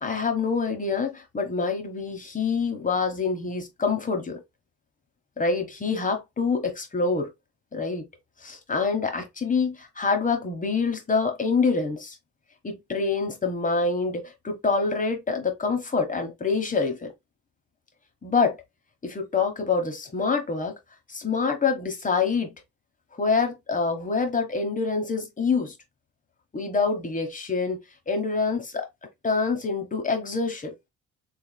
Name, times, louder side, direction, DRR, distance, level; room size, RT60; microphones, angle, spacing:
voice 1, 0.0-4.4 5.4-7.3 7.7-8.0 8.4-12.2 12.6-17.1 18.2-18.6 19.0-20.7 21.1-22.5 23.2-25.7 26.5-27.8 28.1-28.9 29.2-30.7, left 4 dB, 25° left, 1.1 m, -26 dB
3.3 x 3.3 x 2.3 m
cardioid pair, 90°, 30 cm